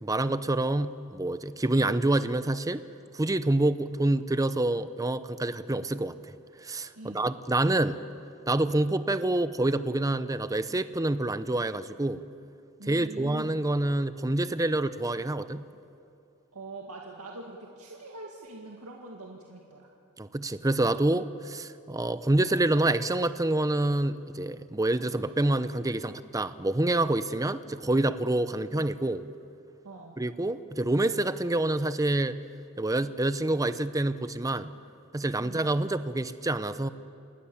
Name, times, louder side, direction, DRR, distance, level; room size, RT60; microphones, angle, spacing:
voice 1, 0.0-2.8 3.1-6.4 6.6-8.0 8.5-12.2 12.9-15.6 20.2-29.2 30.2-32.4 32.8-34.8 35.1-36.9, right 2 dB, 15° right, 13 dB, 0.7 m, -27 dB
voice 2, 7.0-7.3 12.8-13.6 16.5-19.9 29.8-30.2 35.4-35.7, right 2 dB, 85° right, -1 dB, 2.1 m, -43 dB
27.5 x 20.0 x 7.2 m, 2.6 s
head